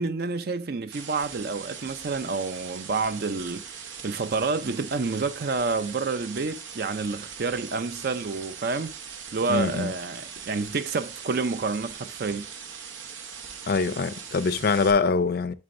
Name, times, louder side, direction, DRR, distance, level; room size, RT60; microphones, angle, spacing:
voice 1, 0.0-3.7 4.0-8.9 9.3-12.5, right 4 dB, 55° right, 0.5 m, -29 dB
sound 1, 0.9-14.9, right 7 dB, 90° right, 0.9 m, -41 dB
voice 2, 9.5-9.9 13.7-15.5, left 4 dB, 55° left, 0.5 m, -24 dB
10.5 x 4.3 x 2.6 m
head